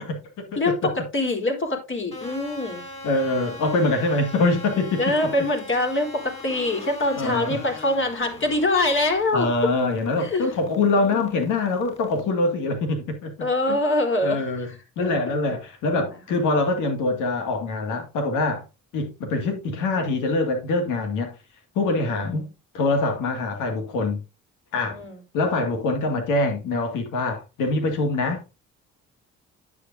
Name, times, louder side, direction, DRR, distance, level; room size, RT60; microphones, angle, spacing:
voice 1, 0.0-0.6 3.0-5.0 7.2-7.6 9.3-13.3 13.7-13.8 14.2-14.7 15.0-18.6 18.9-21.3 21.8-22.5 22.7-24.2 24.7-25.0 25.3-28.4, left 2 dB, 90° left, 2.2 m, -24 dB
voice 2, 0.6-2.8 5.0-9.5 10.2-10.5 11.0-11.2 13.4-15.1 22.0-22.5 24.9-25.2, left 2 dB, 40° left, 3.8 m, -24 dB
sound 1, 2.1-12.2, left 1 dB, 20° left, 4.8 m, -41 dB
10.0 x 8.4 x 2.7 m
cardioid pair, 90°, 30 cm